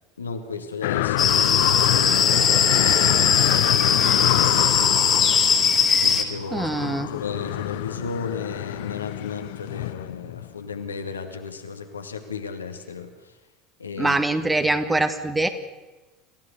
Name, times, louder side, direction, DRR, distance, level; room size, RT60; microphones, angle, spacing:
voice 1, 0.2-5.5 6.0-6.7 7.1-13.4 13.8-14.2, left 5 dB, 80° left, 5 dB, 2.1 m, -34 dB
sound 1, 0.8-10.7 11.1-11.2, left 17 dB, 60° left, 0.6 m, -26 dB
sound 2, 1.2-6.2, left 6 dB, 30° left, 2.6 m, -20 dB
voice 2, 6.5-7.1 14.0-15.5, right 2 dB, 10° right, 9 dB, 2.0 m, -23 dB
27.5 x 15.5 x 6.8 m, 1.2 s
figure-of-eight pair, 75°, 0 cm